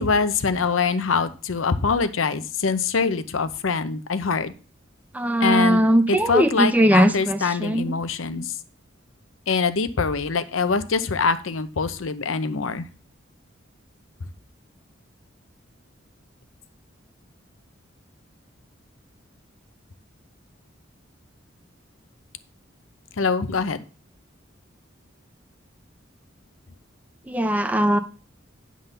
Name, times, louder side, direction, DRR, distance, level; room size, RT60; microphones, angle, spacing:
voice 1, 0.0-4.5 5.4-5.8 6.1-8.5 9.5-12.9 23.2-23.8, left 4 dB, 85° left, 13 dB, 0.7 m, -24 dB
voice 2, 5.1-7.9 27.3-28.0, right 1 dB, 10° right, 9 dB, 0.4 m, -20 dB
9.9 x 3.8 x 6.7 m, 0.36 s
head